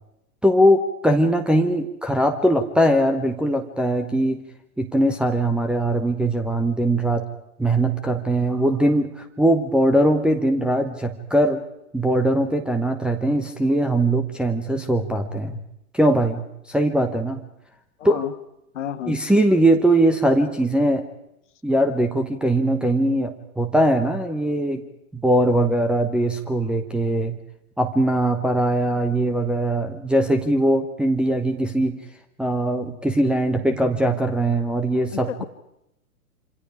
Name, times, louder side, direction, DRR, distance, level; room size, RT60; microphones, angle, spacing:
voice 1, 0.4-4.4 4.8-7.3 7.6-11.6 11.9-15.6 15.9-16.4 16.7-17.4 18.0-18.2 19.1-21.0 21.6-24.8 25.1-27.3 27.8-32.0 32.4-35.4, right 1 dB, ahead, 1 dB, 1.0 m, -21 dB
voice 2, 18.0-18.3 18.7-19.2 35.1-35.4, left 10 dB, 50° left, 10 dB, 1.7 m, -31 dB
27.0 x 25.5 x 5.0 m, 0.81 s
figure-of-eight pair, 110°, 45 cm